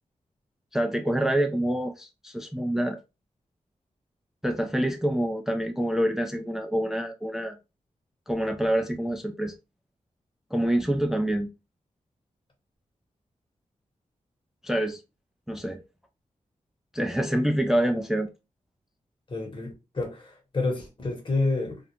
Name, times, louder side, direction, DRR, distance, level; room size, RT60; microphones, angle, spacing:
voice 1, 0.7-3.0 4.4-7.6 8.3-9.5 10.5-11.5 14.6-15.0 15.5-15.8 16.9-18.3, right 1 dB, 5° right, 0.3 m, -26 dB
voice 2, 19.3-21.8, left 3 dB, 40° left, 1.1 m, -29 dB
2.4 x 2.0 x 2.9 m
cardioid pair, 75°, 13 cm